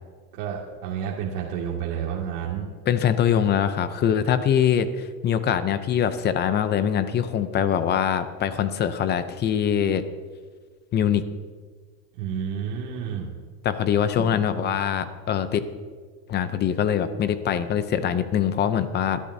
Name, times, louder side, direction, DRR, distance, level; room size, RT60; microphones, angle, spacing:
voice 1, 0.3-2.7 12.2-13.4, right 8 dB, 70° right, -3 dB, 2.3 m, -30 dB
voice 2, 2.9-10.0 10.9-11.2 13.6-15.7 16.3-19.2, left 8 dB, 20° left, 11 dB, 0.5 m, -23 dB
21.0 x 13.5 x 2.7 m, 1.6 s
supercardioid pair, 150°, 49 cm